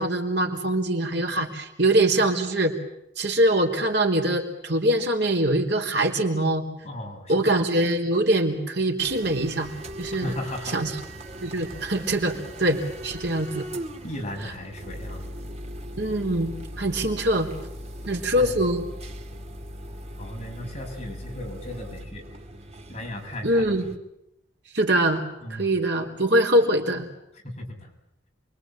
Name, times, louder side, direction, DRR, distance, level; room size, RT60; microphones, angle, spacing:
voice 1, 0.0-2.7 3.2-6.6 7.3-9.7 10.0-10.3 10.7-11.0 11.4-13.6 14.4-14.5 16.0-17.5 18.1-18.9 23.4-23.9 24.7-25.2 25.5-27.1, right 1 dB, 60° right, 2 dB, 3.6 m, -23 dB
voice 2, 6.8-7.3 10.2-10.9 14.0-15.3 18.4-18.6 20.2-22.2 22.9-23.6 25.4-25.7 27.4-27.9, left 1 dB, 35° left, 0 dB, 7.0 m, -36 dB
sound 1, 9.0-24.0, equal, 35° right, 2.2 m, -39 dB
28.0 x 23.5 x 8.9 m, 0.83 s
head